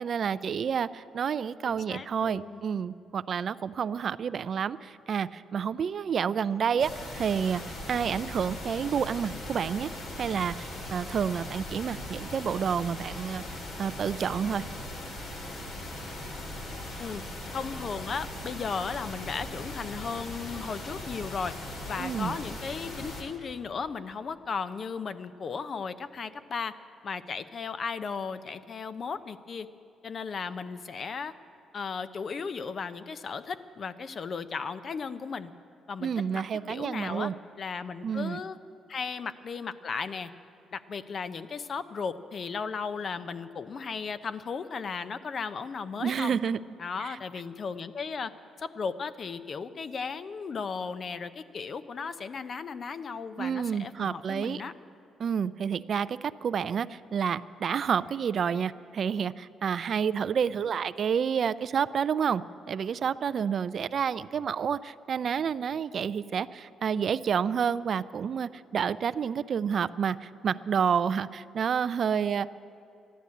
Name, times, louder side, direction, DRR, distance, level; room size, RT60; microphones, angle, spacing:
voice 1, 0.0-7.6 7.9-9.9 10.2-14.6 22.0-22.4 36.0-37.3 38.0-38.4 46.0-46.6 47.0-47.2 53.4-54.6 55.2-62.4 62.7-72.5, right 7 dB, 55° right, 16 dB, 0.3 m, -29 dB
voice 2, 1.6-2.6 17.0-17.2 17.5-21.5 21.9-26.7 27.0-29.7 30.0-31.3 31.7-35.5 35.9-36.4 36.7-37.3 37.6-38.6 38.9-40.3 40.7-46.4 46.8-48.3 48.6-54.7, left 5 dB, 45° left, 13 dB, 0.6 m, -35 dB
sound 1, 6.8-23.2, left 1 dB, 70° left, 2.8 m, -39 dB
13.0 x 11.0 x 8.4 m, 2.7 s
cardioid pair, 90°, 0 cm